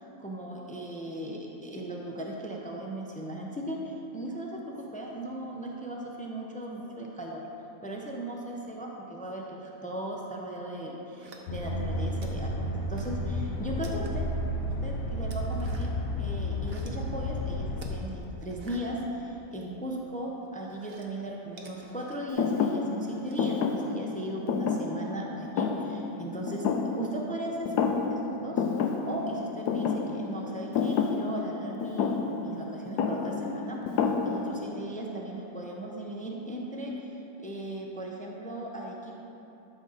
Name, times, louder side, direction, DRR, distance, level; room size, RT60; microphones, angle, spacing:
voice 1, 0.2-7.5 7.8-14.3 14.6-39.1, right 1 dB, 10° left, -2 dB, 0.4 m, -37 dB
sound 1, 11.2-11.8 12.2-13.2 13.5-14.4 14.8-16.1 16.4-17.1 17.7-19.8 20.1-23.6, right 3 dB, 45° right, 0.9 m, -51 dB
sound 2, 11.5-18.0, left 1 dB, 60° left, 1.1 m, -32 dB
Thump thud, 22.4-27.4 27.7-28.3 28.6-34.7, left 5 dB, 75° left, 1.2 m, -29 dB
12.5 x 6.4 x 4.1 m, 2.9 s
omnidirectional pair, 1.8 m